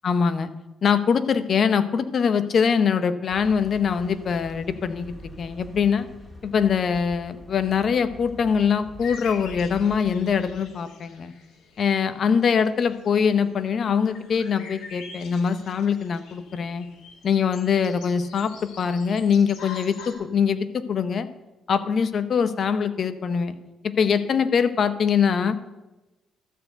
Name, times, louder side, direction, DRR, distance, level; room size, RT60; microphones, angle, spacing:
voice 1, 0.0-0.5 0.8-6.1 6.4-11.3 11.8-16.9 17.2-18.5 18.8-21.3 21.7-23.5 23.8-25.6, left 6 dB, 55° left, 12 dB, 0.7 m, -23 dB
sound 1, 3.3-10.5, equal, 5° left, 2.3 m, -45 dB
sound 2, 9.0-20.1, left 5 dB, 80° left, 2.0 m, -45 dB
12.5 x 4.6 x 7.8 m, 1.1 s
cardioid pair, 90°, 0 cm